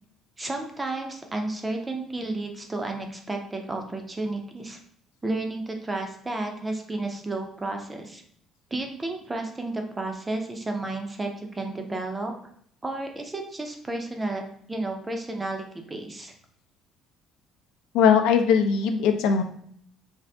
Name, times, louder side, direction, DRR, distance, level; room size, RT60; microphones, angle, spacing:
voice 1, 0.4-4.8 5.2-8.2 8.7-12.3 12.8-14.4 14.7-16.3, right 2 dB, 10° right, 3 dB, 0.4 m, -32 dB
voice 2, 17.9-19.4, left 7 dB, 85° left, 6 dB, 0.4 m, -20 dB
2.6 x 2.4 x 3.3 m, 0.65 s
cardioid pair, 175°, 0 cm